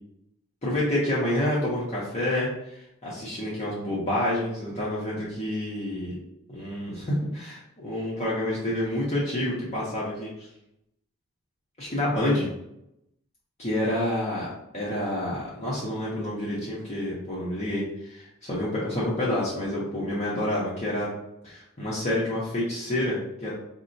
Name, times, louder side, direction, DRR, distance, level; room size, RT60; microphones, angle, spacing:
voice 1, 0.6-6.1 6.5-10.5 11.8-12.5 13.6-14.5 14.7-21.1 21.4-23.5, left 1 dB, 30° left, -7 dB, 0.7 m, -28 dB
4.0 x 2.1 x 2.6 m, 0.82 s
head